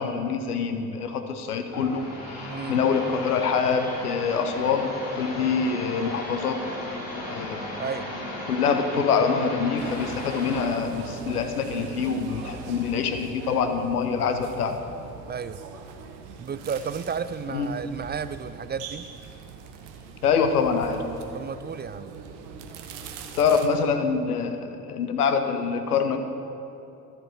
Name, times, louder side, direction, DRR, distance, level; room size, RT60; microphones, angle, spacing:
voice 1, 0.0-4.9 5.2-6.6 7.3-7.7 8.5-14.8 17.5-17.7 20.2-21.0 23.3-26.2, left 6 dB, 90° left, 7 dB, 0.7 m, -25 dB
sound 1, 1.6-10.7, left 1 dB, 70° left, 2.9 m, -35 dB
voice 2, 2.5-2.8 7.8-8.1 15.3-15.6 16.4-19.1 21.3-22.1, right 6 dB, 25° right, 14 dB, 0.4 m, -32 dB
sound 2, 9.8-23.7, right 6 dB, 75° right, 1.0 m, -42 dB
13.0 x 8.0 x 6.8 m, 2.9 s
figure-of-eight pair, 45°, 44 cm